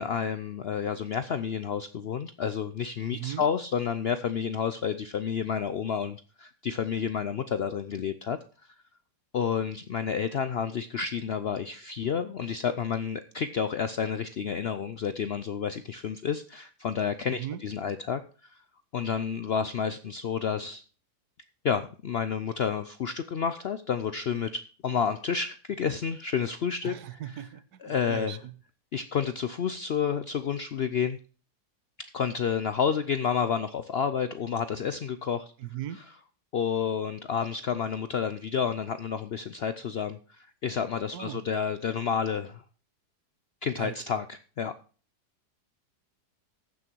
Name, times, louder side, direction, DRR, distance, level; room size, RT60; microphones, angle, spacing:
voice 1, 0.0-8.4 9.3-18.6 18.9-20.8 21.6-27.5 27.8-28.4 28.9-31.2 32.0-35.5 36.0-36.1 36.5-42.6 43.6-44.7, left 7 dB, 80° left, 11 dB, 0.5 m, -30 dB
voice 2, 3.1-3.4 17.3-17.6 26.8-28.5 35.6-36.0 41.1-41.4 43.8-44.2, right 12 dB, 70° right, 14 dB, 1.4 m, -38 dB
14.5 x 6.4 x 4.5 m, 0.38 s
omnidirectional pair, 1.8 m